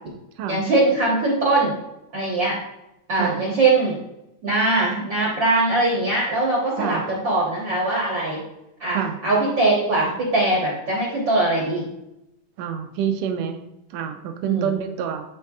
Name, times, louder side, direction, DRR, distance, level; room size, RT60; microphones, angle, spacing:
voice 1, 0.5-1.7 2.1-2.6 3.1-4.0 4.4-8.4 8.8-11.9 14.4-14.7, right 2 dB, 55° right, -4 dB, 1.4 m, -21 dB
voice 2, 12.6-13.6 13.9-15.2, right 8 dB, 75° right, 6 dB, 1.6 m, -27 dB
11.0 x 4.5 x 2.4 m, 0.88 s
omnidirectional pair, 3.5 m